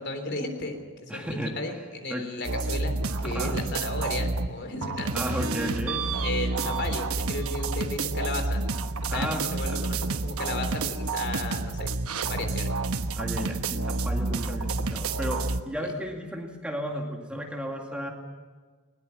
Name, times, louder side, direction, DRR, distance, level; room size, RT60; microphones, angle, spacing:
voice 1, 0.0-5.1 5.9-8.6 9.1-11.9 12.2-12.7 15.8-15.9, left 2 dB, 50° left, 6 dB, 3.5 m, -34 dB
voice 2, 1.1-1.8 2.1-2.4 3.2-3.6 5.1-6.2 9.1-9.8 13.1-18.1, equal, 5° right, 1 dB, 2.1 m, -34 dB
sound 1, 2.4-4.5 4.8-15.6, right 3 dB, 75° right, 1.1 m, -29 dB
20.5 x 19.5 x 7.2 m, 1.5 s
head